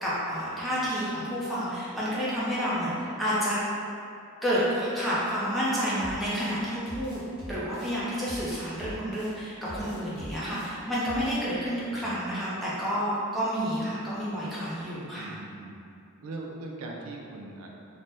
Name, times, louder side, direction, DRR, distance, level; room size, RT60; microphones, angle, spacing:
voice 1, 0.0-3.6 4.4-15.3, equal, ahead, -10 dB, 0.5 m, -30 dB
sound 1, 6.0-6.5 6.9-7.9 8.3-9.3 9.7-10.7 11.0-11.4, right 1 dB, 65° left, 0.9 m, -42 dB
voice 2, 11.9-12.4 15.1-15.8 16.2-17.7, right 2 dB, 70° right, 0 dB, 0.3 m, -40 dB
2.6 x 2.1 x 3.4 m, 2.6 s
head